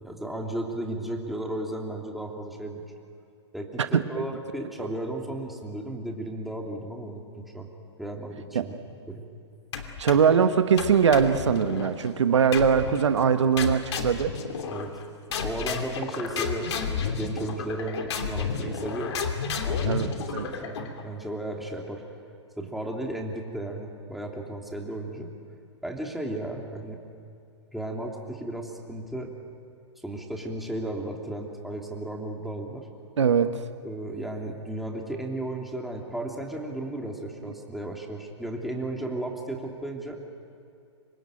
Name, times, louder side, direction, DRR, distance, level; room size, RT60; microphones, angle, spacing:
voice 1, 0.0-2.8 3.5-7.7 8.0-8.7 9.1-9.2 14.7-14.9 15.4-19.2 19.6-22.0 22.6-25.3 25.8-27.0 27.7-29.3 30.0-32.9 33.8-40.2, right 1 dB, ahead, 0 dB, 3.0 m, -34 dB
sound 1, 9.7-10.4 10.8-11.9 12.5-13.1 13.6-15.0 15.3-21.0, left 5 dB, 70° left, 2.9 m, -31 dB
voice 2, 10.0-14.3 19.8-20.4 33.2-33.5 37.4-37.5, right 7 dB, 80° right, 9 dB, 1.3 m, -21 dB
25.5 x 20.0 x 9.1 m, 2.5 s
hypercardioid pair, 125°, 15 cm